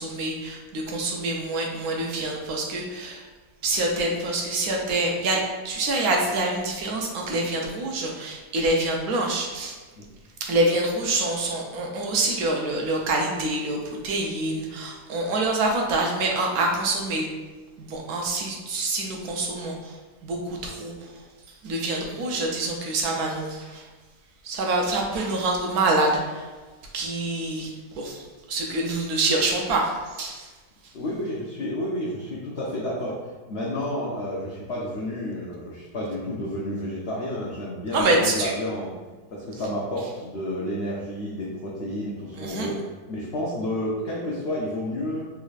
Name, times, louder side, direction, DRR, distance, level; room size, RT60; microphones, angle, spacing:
voice 1, 0.0-3.3 3.6-9.8 10.4-17.3 17.8-23.9 24.4-26.5 26.9-30.5 37.9-38.5 42.4-42.7, right 2 dB, 70° right, 0 dB, 1.0 m, -26 dB
voice 2, 30.9-38.9 39.3-45.3, left 1 dB, 80° left, -4 dB, 0.5 m, -30 dB
3.5 x 3.2 x 2.4 m, 1.3 s
omnidirectional pair, 1.8 m